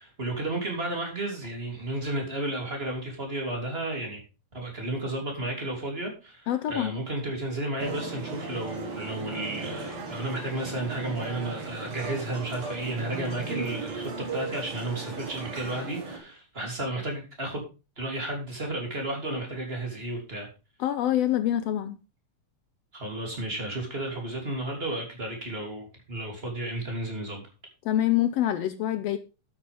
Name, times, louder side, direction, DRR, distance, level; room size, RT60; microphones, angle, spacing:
voice 1, 0.0-4.2 4.5-17.6 18.0-20.5 22.9-27.5, right 1 dB, 20° right, 3.2 m, -33 dB
voice 2, 6.5-7.0 20.8-22.0 27.8-29.2, left 12 dB, 75° left, 1.6 m, -25 dB
sound 1, 7.8-16.2, right 4 dB, 60° right, 3.1 m, -36 dB
12.0 x 8.7 x 3.5 m
omnidirectional pair, 3.4 m